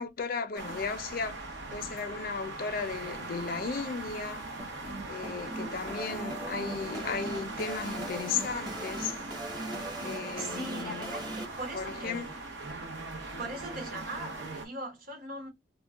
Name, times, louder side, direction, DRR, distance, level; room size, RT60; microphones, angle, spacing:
voice 1, 0.0-1.4 1.7-4.5 5.0-9.1 10.0-11.2 11.7-12.3, left 5 dB, 50° left, 0.4 m, -35 dB
sound 1, 0.5-14.6, right 3 dB, 70° right, 0.8 m, -40 dB
sound 2, 4.6-11.4, right 1 dB, 25° right, 0.8 m, -40 dB
voice 2, 10.4-12.3 13.4-15.5, right 1 dB, 50° right, 1.0 m, -40 dB
2.2 x 2.1 x 3.4 m
head